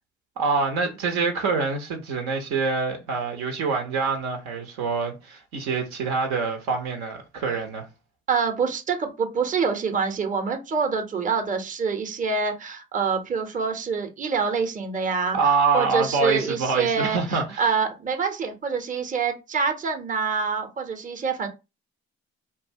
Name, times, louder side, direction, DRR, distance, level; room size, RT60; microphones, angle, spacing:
voice 1, 0.4-7.9 15.3-17.7, right 4 dB, 65° right, 0.7 m, -25 dB
voice 2, 8.3-15.4 15.7-21.5, right 5 dB, 25° right, 0.7 m, -26 dB
2.7 x 2.2 x 2.7 m
hypercardioid pair, 50°, 31 cm